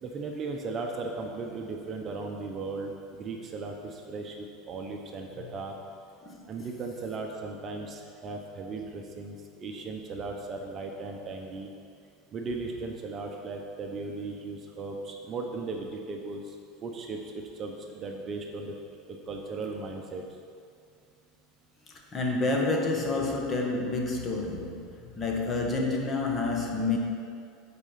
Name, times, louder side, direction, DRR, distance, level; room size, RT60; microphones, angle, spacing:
voice 1, 0.0-5.7 6.5-11.7 12.3-16.5 16.8-18.8 19.1-20.2, right 3 dB, 30° right, 2 dB, 0.8 m, -37 dB
voice 2, 21.9-27.0, left 3 dB, 25° left, 0 dB, 1.1 m, -29 dB
8.7 x 4.3 x 5.6 m, 2.4 s
supercardioid pair, 130°, 0 cm